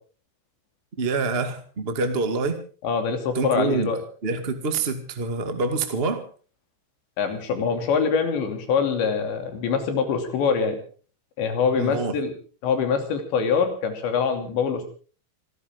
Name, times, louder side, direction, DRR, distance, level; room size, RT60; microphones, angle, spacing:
voice 1, 1.0-2.6 3.3-3.9 4.2-6.2 11.8-12.1, right 3 dB, 85° right, 7 dB, 0.5 m, -26 dB
voice 2, 2.8-4.0 7.2-10.8 11.4-12.3 12.6-14.8, left 6 dB, 70° left, 6 dB, 5.0 m, -24 dB
27.5 x 14.0 x 3.7 m, 0.40 s
omnidirectional pair, 5.4 m